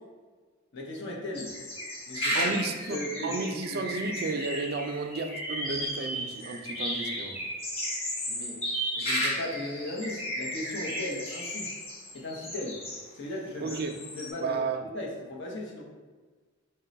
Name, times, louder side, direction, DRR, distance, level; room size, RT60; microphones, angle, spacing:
voice 1, 0.7-1.5 2.1-2.5 2.9-3.8 8.3-8.6 9.0-11.7 12.1-12.8 13.1-13.8 14.1-14.6 14.9-15.8, left 1 dB, 60° left, -1 dB, 0.7 m, -37 dB
sound 1, 1.3-13.1 13.6-14.3, equal, 30° left, 0.9 m, -34 dB
voice 2, 2.3-7.4 13.6-14.0 14.4-14.8, right 4 dB, 50° right, 5 dB, 0.4 m, -33 dB
4.0 x 2.2 x 3.9 m, 1.4 s
head